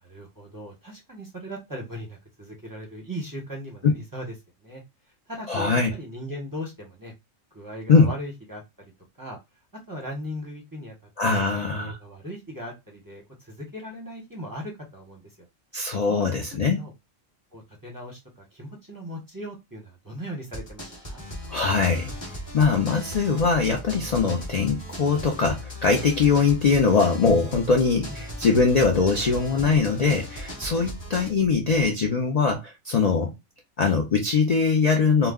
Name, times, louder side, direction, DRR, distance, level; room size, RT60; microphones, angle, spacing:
voice 1, 0.0-4.3 4.6-4.8 5.3-7.1 7.5-8.6 9.2-9.4 9.9-10.9 11.3-15.3 16.1-16.3 16.7-16.9 17.5-21.2 28.1-28.2, equal, 20° right, 0.5 m, -38 dB
voice 2, 5.5-5.9 7.9-8.1 11.2-12.0 15.7-16.8 21.5-22.1 22.5-33.3 33.8-35.3, left 4 dB, 75° left, 0.3 m, -22 dB
sound 1, 20.5-31.3, equal, 25° left, 0.8 m, -37 dB
2.2 x 2.1 x 3.4 m
omnidirectional pair, 1.3 m